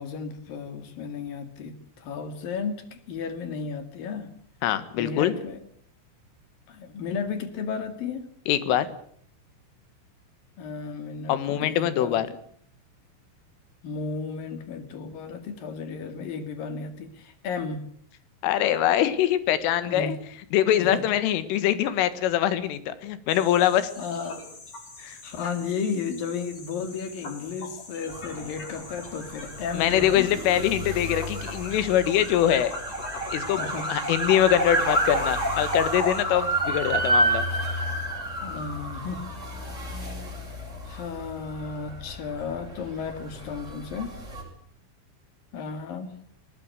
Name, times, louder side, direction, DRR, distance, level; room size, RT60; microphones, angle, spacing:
voice 1, 0.0-4.3 5.0-5.6 6.7-8.2 10.6-12.2 13.8-17.8 19.9-20.2 20.8-21.0 24.0-24.4 25.2-30.3 30.6-30.8 33.6-33.9 38.4-39.3 40.8-44.2 45.5-46.1, left 5 dB, 50° left, 10 dB, 3.4 m, -33 dB
voice 2, 4.6-5.3 8.5-8.9 11.3-12.3 18.4-20.2 20.5-23.9 25.0-25.2 29.7-32.7 33.3-37.5, left 11 dB, 75° left, 14 dB, 4.0 m, -23 dB
sound 1, 23.3-36.2, left 3 dB, 35° left, 5.5 m, -44 dB
sound 2, 28.1-44.4, right 1 dB, 15° right, 7.5 m, -30 dB
20.5 x 19.5 x 8.1 m, 0.63 s
omnidirectional pair, 5.9 m